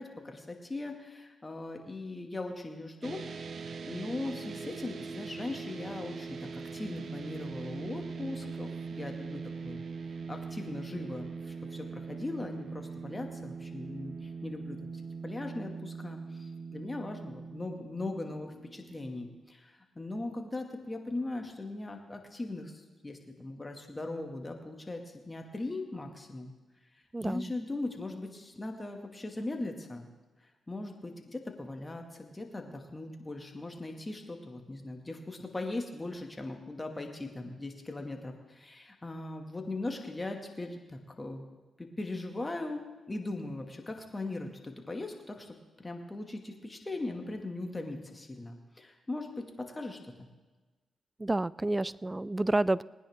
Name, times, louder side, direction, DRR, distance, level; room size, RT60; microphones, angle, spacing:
voice 1, 0.0-3.2 3.6-9.8 10.3-14.8 15.2-26.5 27.2-30.1 30.7-41.5 41.8-50.3, left 2 dB, 25° left, 3 dB, 2.3 m, -39 dB
sound 1, 3.0-19.4, right 5 dB, 60° right, 0.8 m, -41 dB
voice 2, 27.1-27.5 51.2-52.8, right 2 dB, 20° right, 21 dB, 0.4 m, -29 dB
19.5 x 9.9 x 3.7 m, 1.3 s
supercardioid pair, 50°, 0 cm